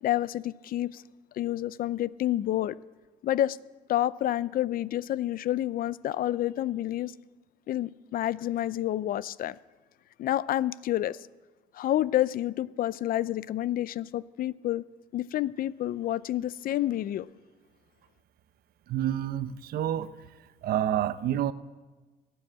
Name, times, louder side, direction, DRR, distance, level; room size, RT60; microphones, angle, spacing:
voice 1, 0.0-1.0 1.3-2.8 3.2-3.6 3.9-7.1 7.7-9.6 10.2-11.2 11.7-14.8 15.1-17.3, left 13 dB, 60° left, 0.5 m, -29 dB
voice 2, 18.9-20.1 20.6-21.5, right 11 dB, 65° right, 0.8 m, -28 dB
17.0 x 10.0 x 7.6 m
cardioid pair, 110°, 17 cm